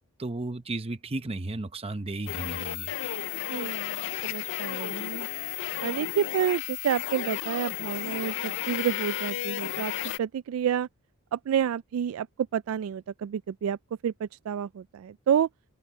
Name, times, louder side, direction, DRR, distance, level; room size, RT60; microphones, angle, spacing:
voice 1, 0.2-2.9, right 2 dB, 30° right, 0.8 m, -34 dB
sound 1, 2.3-10.2, left 12 dB, 60° left, 0.4 m, -33 dB
voice 2, 3.5-5.3 5.8-9.9 10.2-10.9 11.3-12.3 12.5-13.8 14.0-15.5, right 8 dB, 75° right, 0.3 m, -29 dB
open air
head